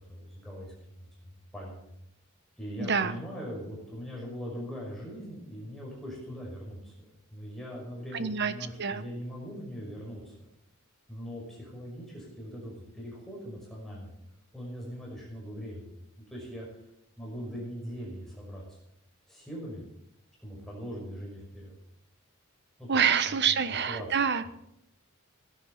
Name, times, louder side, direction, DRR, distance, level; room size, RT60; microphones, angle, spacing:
voice 1, 0.1-1.9 2.6-7.1 7.3-10.3 11.1-14.1 14.5-15.9 16.3-16.7 17.2-18.8 19.3-19.8 20.4-21.7 22.8-23.0 23.5-23.6 23.9-24.1, equal, ahead, -4 dB, 5.7 m, -41 dB
voice 2, 2.8-3.2 8.1-8.5 8.8-9.0 22.9-24.5, right 6 dB, 55° right, 12 dB, 1.2 m, -26 dB
17.0 x 10.5 x 6.8 m, 0.77 s
head